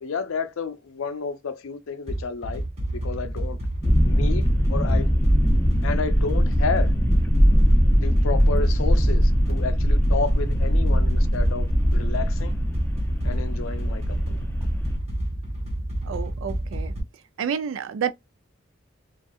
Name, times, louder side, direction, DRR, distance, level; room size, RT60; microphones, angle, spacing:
voice 1, 0.0-2.6 2.9-3.6 4.0-5.1 5.8-6.9 8.0-12.5 13.2-14.4, left 5 dB, 90° left, 0.5 m, -31 dB
sound 1, 2.1-17.0, right 1 dB, 30° right, 1.1 m, -30 dB
sound 2, 3.8-15.0, equal, 10° left, 0.4 m, -21 dB
voice 2, 16.0-16.9 17.4-18.1, right 7 dB, 80° right, 0.3 m, -29 dB
2.6 x 2.3 x 2.2 m
head